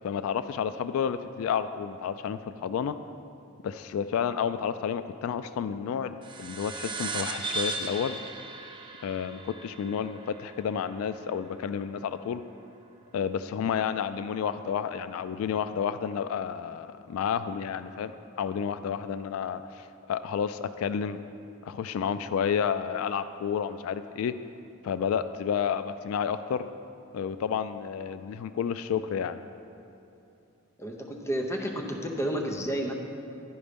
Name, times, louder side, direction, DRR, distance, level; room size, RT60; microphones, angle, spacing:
voice 1, 0.0-3.0 3.6-8.2 9.0-12.4 13.1-18.1 18.4-21.2 21.6-24.3 24.8-26.7 27.1-29.4, left 7 dB, 85° left, 13 dB, 0.3 m, -30 dB
sound 1, 6.2-11.1, right 2 dB, 20° right, 0.4 m, -36 dB
voice 2, 30.8-32.9, equal, 15° left, 1 dB, 0.7 m, -31 dB
11.0 x 5.2 x 5.1 m, 2.8 s
head